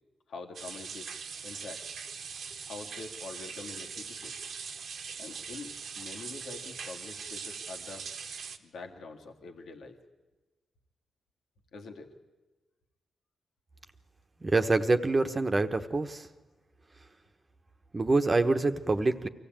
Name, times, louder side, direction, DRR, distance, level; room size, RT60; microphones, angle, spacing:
voice 1, 0.3-1.1 1.4-1.8 2.6-4.5 5.2-8.1 8.6-10.0 11.7-12.1, left 3 dB, 75° left, 2 dB, 2.0 m, -45 dB
sound 1, 0.5-8.6, right 6 dB, 70° right, 1.2 m, -41 dB
voice 2, 14.4-16.3 17.9-19.3, right 3 dB, 30° right, 7 dB, 1.2 m, -26 dB
24.0 x 15.5 x 9.0 m, 1.2 s
cardioid pair, 65°, 0 cm